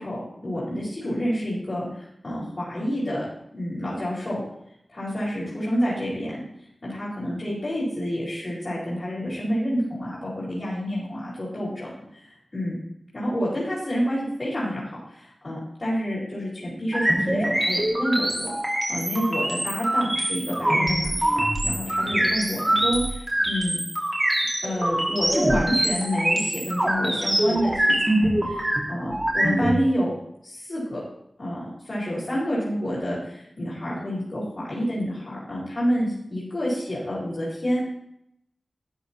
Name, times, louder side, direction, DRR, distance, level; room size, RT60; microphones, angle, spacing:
voice 1, 0.0-3.3 3.5-4.4 4.9-6.4 6.8-12.8 13.1-18.5 18.9-23.8 24.6-30.1 30.4-31.0 31.4-37.8, equal, 50° left, -8 dB, 4.4 m, -28 dB
sound 1, 16.9-29.8, right 1 dB, 20° right, 1.9 m, -24 dB
12.5 x 10.0 x 2.9 m, 0.77 s
wide cardioid pair, 70°, 0 cm